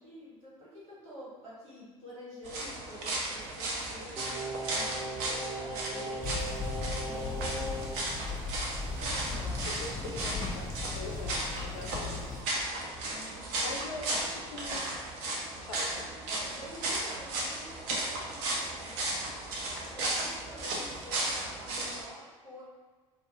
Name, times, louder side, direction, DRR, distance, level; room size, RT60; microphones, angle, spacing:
voice 1, 0.0-6.4 7.0-7.9 9.0-10.0 11.8-12.2 13.0-14.0 16.2-19.0 19.9-22.6, equal, 80° right, -9 dB, 1.4 m, -49 dB
sound 1, 2.4-22.0, right 2 dB, 60° right, 0.6 m, -35 dB
Singing, 4.2-8.0 8.3-8.4, right 1 dB, 5° right, 0.8 m, -38 dB
sound 2, 6.2-12.4, left 4 dB, 20° left, 0.3 m, -38 dB
voice 2, 9.8-12.4 13.6-14.9 15.6-16.1, left 2 dB, 90° left, 0 dB, 0.5 m, -42 dB
2.4 x 2.1 x 2.9 m, 1.3 s
hypercardioid pair, 65°, 17 cm